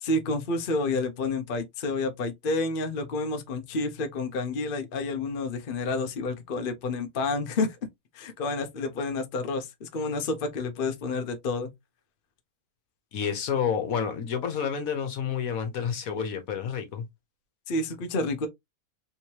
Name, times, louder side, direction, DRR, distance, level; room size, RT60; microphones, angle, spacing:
voice 1, 0.0-7.8 8.1-11.7 17.7-18.5, left 3 dB, 50° left, 0.7 m, -29 dB
voice 2, 13.1-17.1, left 7 dB, 70° left, 1.3 m, -29 dB
3.5 x 3.1 x 2.8 m
omnidirectional pair, 1.6 m